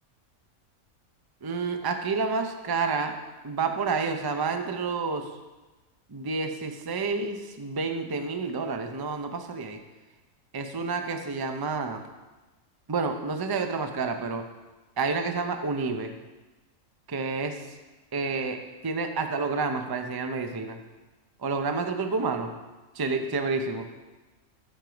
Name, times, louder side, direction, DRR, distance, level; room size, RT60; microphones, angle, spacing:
voice 1, 1.4-3.2 3.4-5.4 6.1-9.8 10.5-12.0 12.9-14.5 15.0-16.1 17.1-17.8 18.1-20.8 21.4-22.5 22.9-23.9, right 4 dB, 25° right, 6 dB, 0.5 m, -29 dB
12.5 x 7.4 x 5.1 m, 1.2 s
omnidirectional pair, 1.5 m